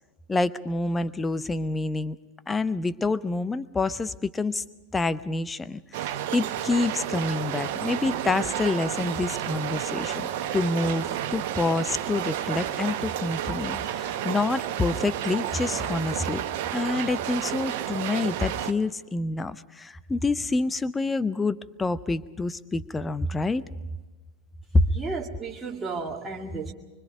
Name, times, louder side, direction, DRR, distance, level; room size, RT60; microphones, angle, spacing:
voice 1, 0.3-2.2 2.5-4.6 4.9-16.4 16.7-23.6 24.7-24.8, left 3 dB, 10° left, 15 dB, 0.8 m, -27 dB
sound 1, 5.9-18.7, right 11 dB, 50° right, 1.3 m, -31 dB
voice 2, 25.0-26.7, right 4 dB, 15° right, -2 dB, 2.1 m, -33 dB
25.0 x 24.0 x 5.1 m, 1.2 s
figure-of-eight pair, 90°, 0 cm